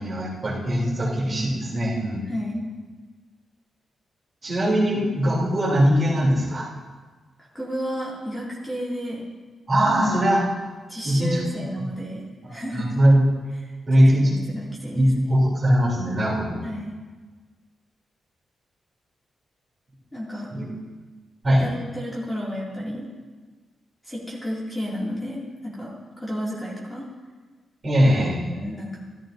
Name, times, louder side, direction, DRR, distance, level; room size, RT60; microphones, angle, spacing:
voice 1, 0.0-2.3 4.4-6.7 9.7-10.4 11.0-11.4 12.4-13.2 13.9-14.6 14.9-16.6 20.5-20.7 21.4-21.6 27.8-28.4, equal, 35° right, -5 dB, 3.2 m, -21 dB
voice 2, 2.3-2.7 7.5-9.2 10.9-13.0 13.6-13.7 14.2-15.1 16.6-16.9 20.1-20.5 21.6-23.1 24.0-27.1 28.5-29.0, equal, 10° left, -6 dB, 2.3 m, -32 dB
13.5 x 13.0 x 2.6 m, 1.4 s
wide cardioid pair, 125°, 0 cm